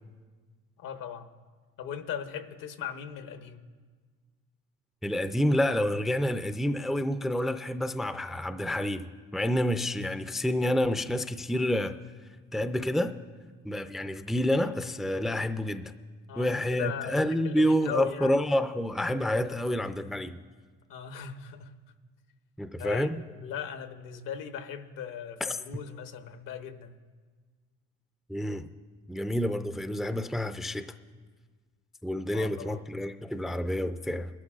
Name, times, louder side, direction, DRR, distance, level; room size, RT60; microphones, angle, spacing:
voice 1, 0.8-1.3 1.8-3.6 16.3-18.3 20.9-21.7 22.8-27.0 32.3-32.8, left 8 dB, 75° left, 1.1 m, -38 dB
voice 2, 5.0-9.1 9.3-11.9 12.5-13.1 13.6-15.9 16.4-20.4 22.6-23.2 25.4-25.6 28.3-28.6 29.1-30.9 32.0-34.3, left 1 dB, ahead, 0.4 m, -28 dB
22.0 x 12.0 x 2.4 m
supercardioid pair, 90°, 33 cm